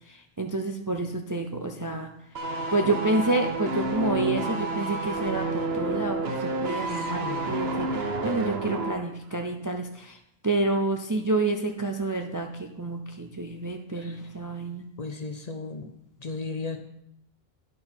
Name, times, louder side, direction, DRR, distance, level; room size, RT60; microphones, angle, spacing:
voice 1, 0.1-2.1 2.7-10.2 10.4-14.8, right 2 dB, 25° right, 4 dB, 0.4 m, -29 dB
sound 1, 2.4-9.0 9.3-9.5, right 2 dB, 75° right, 1.2 m, -30 dB
voice 2, 6.9-7.6 13.9-14.2 15.0-15.9 16.2-16.8, left 4 dB, 45° left, 7 dB, 0.7 m, -36 dB
10.0 x 5.9 x 4.4 m, 0.79 s
omnidirectional pair, 1.1 m